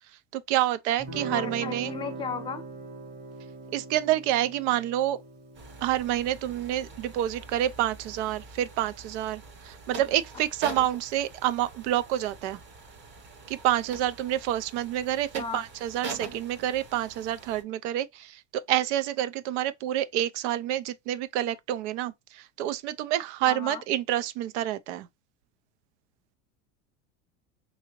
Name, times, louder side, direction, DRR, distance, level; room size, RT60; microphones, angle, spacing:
voice 1, 0.3-1.9 3.7-5.2 5.8-12.6 13.5-25.1, right 13 dB, 75° right, 0.5 m, -28 dB
Guitar, 1.0-8.1, right 3 dB, 50° right, 1.4 m, -41 dB
voice 2, 1.3-2.6 10.7-10.8 15.4-15.6 23.5-23.8, left 6 dB, 15° left, 0.4 m, -35 dB
sound 1, 5.5-17.6, right 3 dB, 30° right, 0.8 m, -44 dB
2.8 x 2.7 x 2.9 m
supercardioid pair, 130°, 36 cm